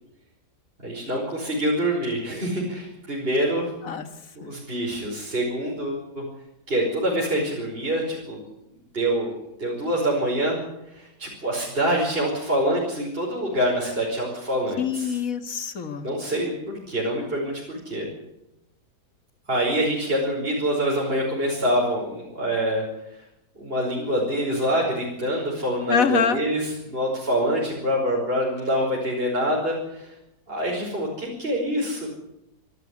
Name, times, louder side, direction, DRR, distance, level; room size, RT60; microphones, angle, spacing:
voice 1, 0.8-3.7 4.4-6.2 6.7-8.4 8.9-9.3 9.6-10.6 10.9-15.2 16.0-18.1 19.5-22.8 23.6-30.1 30.5-32.1, equal, 35° right, -3 dB, 5.6 m, -25 dB
voice 2, 14.8-16.1 25.9-26.4, left 6 dB, 55° left, 10 dB, 2.0 m, -24 dB
26.5 x 12.5 x 9.8 m, 0.86 s
omnidirectional pair, 1.8 m